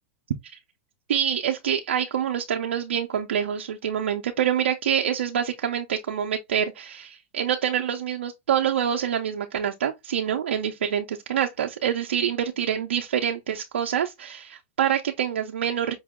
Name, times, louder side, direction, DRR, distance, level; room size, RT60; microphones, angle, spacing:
voice 1, 1.1-15.9, right 9 dB, 90° right, 0.6 m, -26 dB
5.3 x 2.0 x 3.5 m
hypercardioid pair, 125°, 6 cm